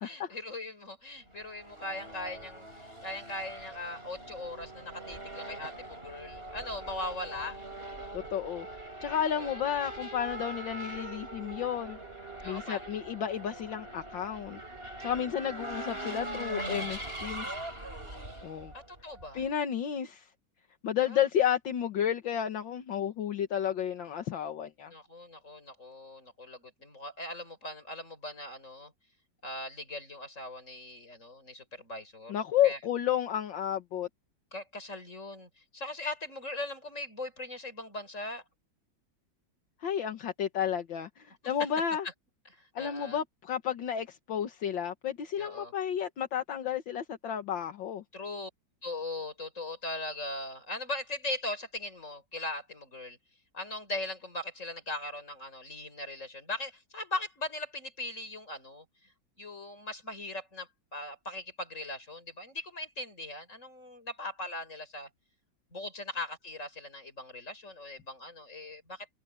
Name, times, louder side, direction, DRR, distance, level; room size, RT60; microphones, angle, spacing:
voice 1, 0.0-7.6 9.3-9.6 10.5-10.6 12.4-13.0 18.7-19.5 21.0-21.2 24.9-28.9 29.4-32.4 32.6-32.8 34.5-38.4 41.4-41.5 42.5-43.2 45.4-45.7 48.1-48.5 48.8-53.2 53.5-58.8 59.4-65.1 65.7-69.1, left 2 dB, 40° left, 6.4 m, -40 dB
Race car auto racing / Accelerating revving vroom, 1.3-19.5, right 1 dB, 30° right, 8.4 m, -42 dB
voice 2, 8.1-8.7 9.0-12.0 12.4-14.6 15.0-17.5 18.4-18.7 19.3-20.3 20.8-24.9 32.3-34.1 39.8-42.1 42.8-48.0, left 9 dB, 75° left, 2.0 m, -32 dB
omnidirectional pair, 2.1 m